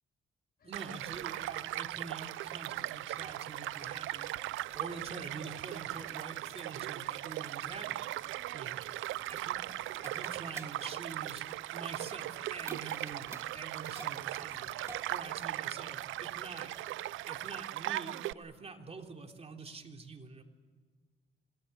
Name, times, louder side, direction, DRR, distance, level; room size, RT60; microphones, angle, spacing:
sound 1, 0.6-17.6, left 4 dB, 50° left, 5.3 m, -65 dB
voice 1, 0.6-8.0 8.5-8.8 9.3-9.7 10.0-11.4 11.7-14.7 15.1-16.7 17.3-20.4, right 4 dB, 30° right, 3 dB, 3.4 m, -46 dB
Child speech kid speaking / Stream / Car passing by, 0.7-18.3, right 15 dB, 85° right, 0.6 m, -39 dB
sound 2, 8.9-15.4, right 2 dB, 15° right, 2.0 m, -51 dB
27.0 x 19.0 x 7.0 m, 1.5 s
cardioid pair, 90°, 20 cm